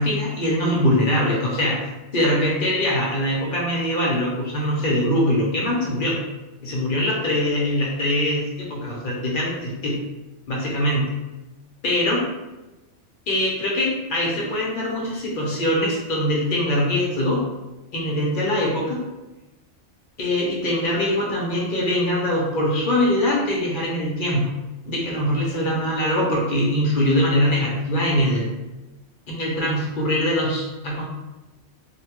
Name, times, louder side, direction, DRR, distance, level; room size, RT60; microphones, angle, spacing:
voice 1, 0.0-1.8 2.1-6.2 6.6-10.0 10.5-11.1 11.8-12.2 13.3-17.4 17.9-19.0 20.2-24.5 24.9-28.5 29.3-31.0, left 1 dB, 55° left, -3 dB, 0.7 m, -22 dB
2.7 x 2.2 x 2.8 m, 1.1 s
omnidirectional pair, 1.2 m